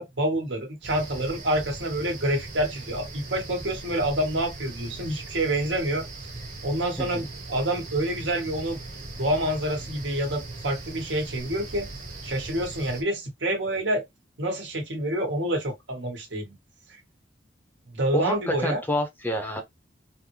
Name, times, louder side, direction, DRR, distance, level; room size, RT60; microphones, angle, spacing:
voice 1, 0.0-6.1 6.6-8.8 9.2-11.9 12.2-14.0 14.4-16.5 17.9-18.8, right 1 dB, 75° right, 1.3 m, -27 dB
sound 1, 0.8-13.0, right 2 dB, 45° right, 1.4 m, -39 dB
voice 2, 18.1-19.6, left 1 dB, 10° left, 0.7 m, -28 dB
3.8 x 2.1 x 3.0 m
head